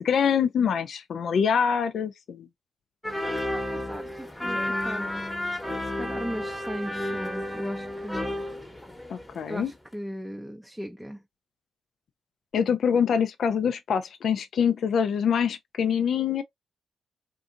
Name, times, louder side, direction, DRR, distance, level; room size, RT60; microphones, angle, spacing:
voice 1, 0.0-2.5 9.1-9.7 12.5-16.4, left 7 dB, 70° left, 0.4 m, -25 dB
sound 1, 3.0-9.6 9.9-10.0, left 1 dB, 15° left, 1.0 m, -32 dB
voice 2, 3.2-5.2 5.7-8.3 9.5-11.2, equal, 5° right, 0.5 m, -38 dB
2.6 x 2.5 x 2.4 m
supercardioid pair, 50°, 0 cm